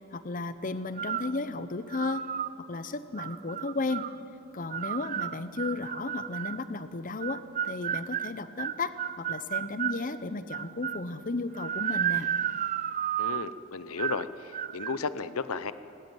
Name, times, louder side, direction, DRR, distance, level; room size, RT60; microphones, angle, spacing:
voice 1, 0.1-2.3 2.7-4.1 4.5-12.3, left 3 dB, 40° left, 12 dB, 0.7 m, -34 dB
sound 1, 1.0-1.4 1.9-2.5 3.2-4.2 4.7-6.6 7.2-10.0 10.5-11.1 11.6-13.5 14.0-14.3 14.5-15.0, right 9 dB, 35° right, 0.4 m, -32 dB
voice 2, 13.2-15.7, left 4 dB, 85° left, 14 dB, 0.8 m, -34 dB
19.0 x 17.0 x 9.2 m, 2.9 s
head